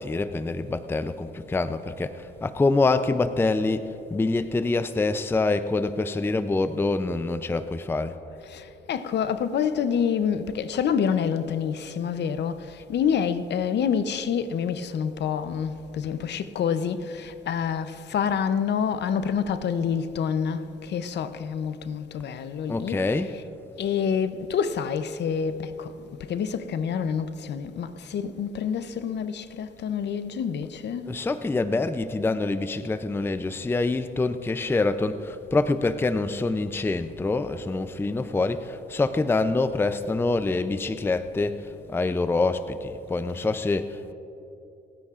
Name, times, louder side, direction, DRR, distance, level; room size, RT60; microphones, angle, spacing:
voice 1, 0.0-8.2 22.7-23.4 31.1-44.1, left 3 dB, 10° left, 0.4 m, -26 dB
voice 2, 8.4-23.4 23.8-31.2, left 7 dB, 60° left, 0.6 m, -27 dB
29.5 x 9.8 x 2.5 m
cardioid pair, 90°, 20 cm